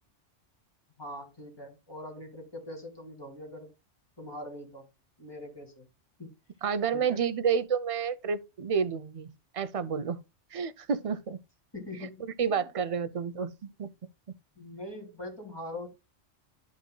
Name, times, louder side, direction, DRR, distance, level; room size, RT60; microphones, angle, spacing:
voice 1, 1.0-3.7 4.2-4.9 5.2-5.9 6.2-6.3 6.9-7.2 11.7-12.7 14.6-15.9, left 1 dB, 20° left, 2.7 m, -42 dB
voice 2, 6.6-10.2 10.5-11.4 12.4-13.9, right 6 dB, 45° right, 0.5 m, -30 dB
12.5 x 5.1 x 2.2 m
omnidirectional pair, 1.2 m